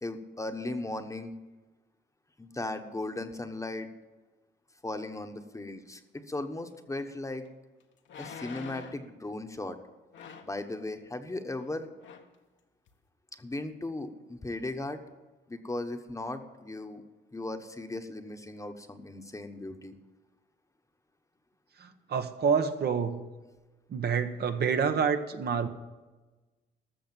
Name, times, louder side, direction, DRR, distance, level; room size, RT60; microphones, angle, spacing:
voice 1, 0.0-1.3 2.4-3.9 4.8-7.4 8.2-9.8 10.4-11.9 13.4-15.0 15.5-17.0 17.3-19.9, left 2 dB, 15° left, 6 dB, 1.2 m, -37 dB
sound 1, 7.0-7.1 8.0-9.1 10.1-10.6 11.6-11.7 12.0-12.3 12.9-13.0, left 6 dB, 70° left, 1.4 m, -45 dB
voice 2, 21.8-23.3 23.9-25.7, right 6 dB, 55° right, 7 dB, 1.1 m, -28 dB
14.0 x 6.6 x 9.0 m, 1.2 s
cardioid pair, 90°, 20 cm